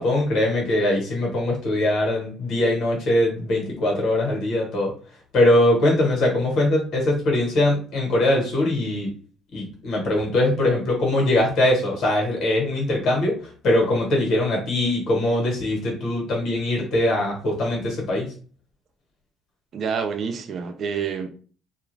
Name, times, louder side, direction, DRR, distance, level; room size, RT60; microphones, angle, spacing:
voice 1, 0.0-4.9 5.3-9.1 9.5-13.4 13.6-18.3, left 1 dB, 50° left, 1.1 m, -21 dB
voice 2, 19.7-21.3, right 6 dB, 35° right, 0.3 m, -27 dB
2.3 x 2.2 x 3.1 m
cardioid pair, 170°, 0 cm